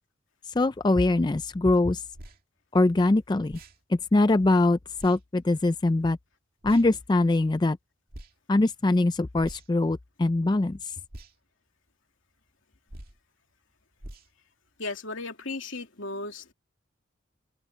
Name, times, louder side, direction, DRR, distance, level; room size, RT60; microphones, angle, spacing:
voice 1, 0.6-2.0 2.7-3.6 3.9-6.2 6.6-7.8 8.5-10.9, left 2 dB, 20° left, 0.4 m, -23 dB
sound 1, 2.1-2.4 3.5-3.8 5.0-5.2 6.6-6.9 8.1-8.3 9.4-9.8 11.1-11.3 12.9-13.2 14.0-14.3, right 1 dB, 45° right, 2.5 m, -44 dB
voice 2, 14.8-16.5, left 3 dB, 75° left, 2.7 m, -35 dB
open air
head